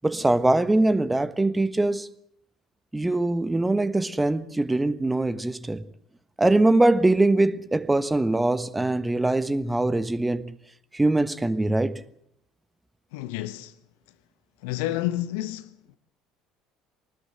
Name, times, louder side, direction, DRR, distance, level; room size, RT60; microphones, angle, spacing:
voice 1, 0.0-2.1 2.9-5.8 6.4-10.5 10.9-12.0, right 2 dB, 10° right, 1.3 m, -22 dB
voice 2, 13.1-13.7 14.6-15.7, left 14 dB, 70° left, 1.2 m, -29 dB
24.5 x 19.5 x 7.9 m
figure-of-eight pair, 60°, 0 cm